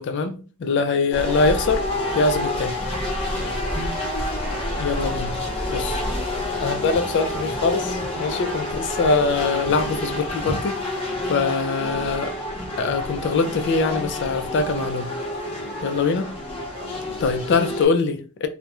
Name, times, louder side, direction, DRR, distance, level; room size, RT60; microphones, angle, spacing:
voice 1, 0.0-1.8 2.1-2.7 4.8-5.3 5.7-6.0 6.6-12.3 12.8-15.1 15.8-16.3 17.2-18.5, left 4 dB, 50° left, 0.3 m, -23 dB
voice 2, 0.7-1.4 3.2-3.9 15.6-16.0 16.7-17.2, right 2 dB, 40° right, 0.6 m, -44 dB
sound 1, 1.1-17.9, left 1 dB, 25° left, 0.7 m, -28 dB
2.2 x 2.1 x 2.9 m
head